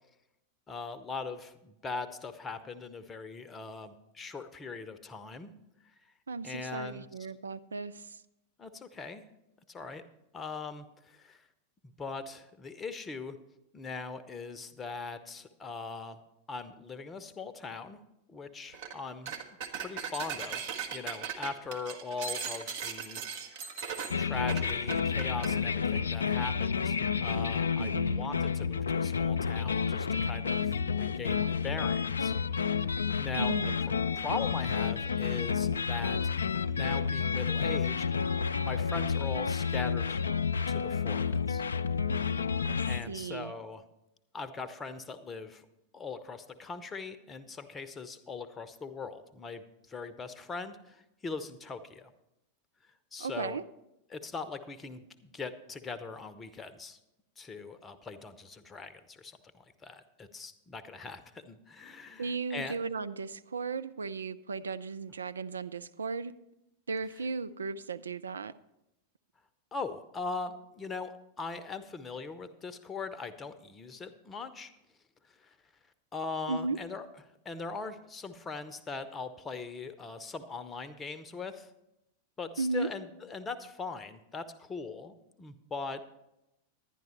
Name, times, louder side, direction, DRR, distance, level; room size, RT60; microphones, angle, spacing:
voice 1, 0.7-5.5 6.4-7.1 8.6-9.2 9.7-10.0 10.3-11.4 11.8-13.4 13.7-16.2 16.5-18.0 18.3-19.3 19.8-23.5 24.2-32.3 33.2-33.5 34.2-38.0 38.6-40.2 40.7-41.6 42.9-43.8 44.3-45.6 45.9-52.1 53.1-53.6 54.1-57.0 57.4-62.8 69.7-74.7 75.4-75.5 76.1-77.0 77.4-81.7 82.4-86.0, left 4 dB, 20° left, 11 dB, 0.8 m, -41 dB
voice 2, 6.3-8.2 27.8-28.4 33.3-33.8 42.7-43.5 53.2-53.6 62.2-66.3 66.9-68.5 76.5-76.8 82.6-82.9, right 4 dB, 70° right, 12 dB, 0.4 m, -36 dB
sound 1, 18.7-19.0 19.3-25.6, right 7 dB, 50° right, 1.1 m, -38 dB
sound 2, 24.1-43.0, left 6 dB, 70° left, 0.3 m, -30 dB
10.5 x 10.5 x 4.3 m, 0.88 s
figure-of-eight pair, 90°, 0 cm